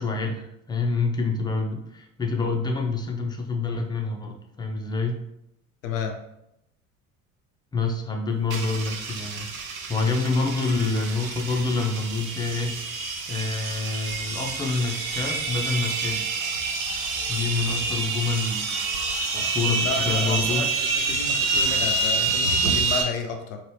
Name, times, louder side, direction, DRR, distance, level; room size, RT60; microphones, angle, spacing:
voice 1, 0.0-5.2 7.7-9.5 9.9-13.0 13.3-16.2 17.3-18.9 19.2-20.6, left 3 dB, 10° left, 2 dB, 0.5 m, -27 dB
voice 2, 5.8-6.2 19.6-20.7 21.1-23.6, left 5 dB, 80° left, 4 dB, 0.5 m, -31 dB
sound 1, 8.5-23.0, right 4 dB, 80° right, 0.6 m, -27 dB
2.9 x 2.7 x 3.1 m, 0.81 s
figure-of-eight pair, 65°, 40 cm